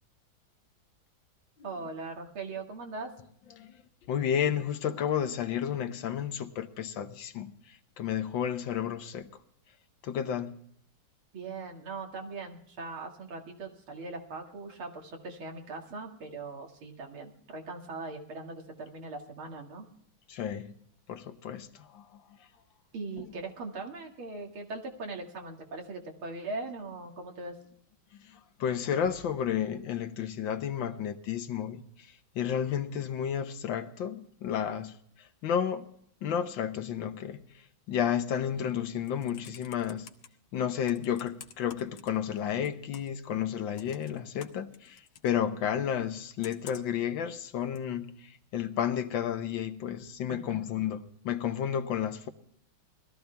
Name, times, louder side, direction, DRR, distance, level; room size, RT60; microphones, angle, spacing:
voice 1, 1.6-3.1 11.3-19.9 22.9-27.6 50.3-50.6, right 3 dB, 90° right, 3.0 m, -40 dB
voice 2, 4.1-9.3 10.0-10.6 20.3-20.8 21.1-22.2 23.2-23.3 28.2-31.8 32.3-35.9 36.2-37.4 37.9-40.1 40.5-52.3, left 9 dB, 70° left, 1.6 m, -32 dB
Computer keyboard, 39.0-40.3 40.9-42.4 42.6-43.2 43.8-45.3 46.4-47.0 47.8-47.9, left 9 dB, 90° left, 1.9 m, -49 dB
20.0 x 14.0 x 3.4 m
omnidirectional pair, 2.2 m